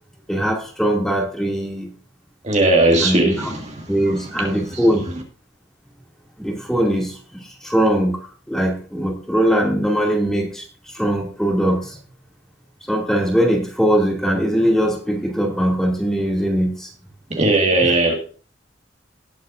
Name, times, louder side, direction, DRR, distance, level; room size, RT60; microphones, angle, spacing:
voice 1, 0.3-1.9 3.0-3.5 3.9-5.1 6.4-12.0 12.9-16.9 17.8-17.9, equal, 5° left, 2.4 m, -21 dB
voice 2, 2.4-4.5 17.3-18.1, right 2 dB, 35° right, 1.8 m, -18 dB
19.0 x 7.8 x 2.6 m
head